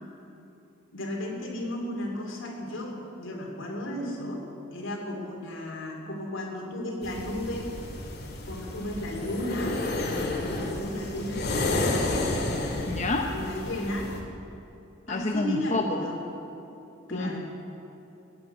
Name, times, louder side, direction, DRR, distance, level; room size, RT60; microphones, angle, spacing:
voice 1, 0.9-4.4 4.7-7.7 8.5-12.3 13.2-14.1 15.1-16.2 17.1-17.4, left 1 dB, 75° left, 0 dB, 2.9 m, -34 dB
sound 1, 7.0-14.2, left 2 dB, 55° left, 2.1 m, -31 dB
voice 2, 12.9-13.3 15.1-16.0 17.1-17.4, left 2 dB, 35° left, 2 dB, 0.8 m, -28 dB
15.5 x 9.4 x 8.1 m, 2.9 s
head